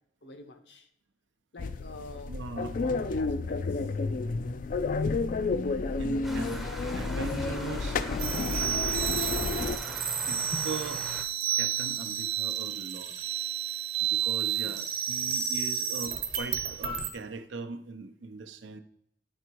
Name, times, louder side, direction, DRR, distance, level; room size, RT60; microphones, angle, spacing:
voice 1, 0.2-0.9 1.5-2.3 2.6-3.9 14.6-14.9, left 2 dB, 65° left, 7 dB, 0.9 m, -46 dB
sound 1, 1.6-9.8, left 3 dB, 45° left, 0.4 m, -31 dB
voice 2, 2.3-2.8 6.0-8.0 8.6-11.1 11.6-13.1 14.0-18.8, right 3 dB, 85° right, 8 dB, 0.6 m, -40 dB
sound 2, 6.2-11.2, equal, ahead, 0.6 m, -41 dB
sound 3, 8.2-17.1, right 9 dB, 60° right, 1.1 m, -31 dB
9.2 x 3.4 x 4.5 m, 0.73 s
head